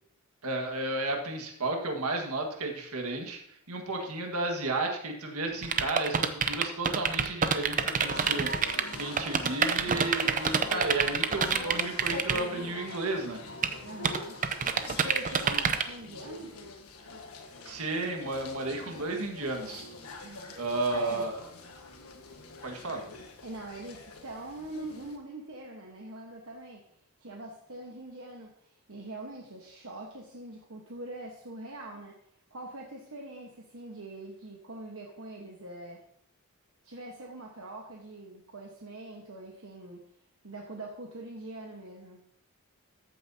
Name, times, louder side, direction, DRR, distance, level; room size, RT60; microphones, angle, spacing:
voice 1, 0.4-13.4 17.6-19.9 20.6-21.3 22.6-23.0, right 2 dB, 90° right, 3 dB, 1.7 m, -33 dB
sound 1, 5.6-12.4 13.6-13.7 14.0-15.8, right 6 dB, 35° right, 0.6 m, -26 dB
sound 2, 8.1-25.2, left 2 dB, 80° left, 1.4 m, -44 dB
voice 2, 13.8-16.6 20.2-21.3 23.4-26.8 27.2-32.2 32.5-36.0 36.8-40.0 40.4-42.3, right 1 dB, 65° right, -1 dB, 1.3 m, -43 dB
14.0 x 8.8 x 2.8 m, 0.71 s
head